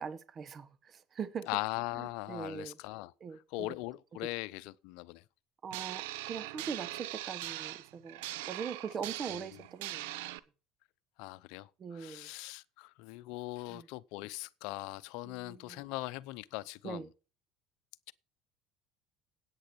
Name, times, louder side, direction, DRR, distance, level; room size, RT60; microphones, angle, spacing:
voice 1, 0.0-1.5 2.0-2.8 3.2-3.7 5.6-8.2 8.5-10.2 11.8-12.3 13.7-13.9 15.2-15.8 16.8-17.1, right 6 dB, 40° right, 1.1 m, -41 dB
voice 2, 1.5-3.1 3.5-5.2 9.3-9.6 11.2-17.1, left 19 dB, 70° left, 0.7 m, -40 dB
sound 1, 5.7-10.4, right 16 dB, 75° right, 0.8 m, -41 dB
10.0 x 9.0 x 4.7 m
hypercardioid pair, 75°, 0 cm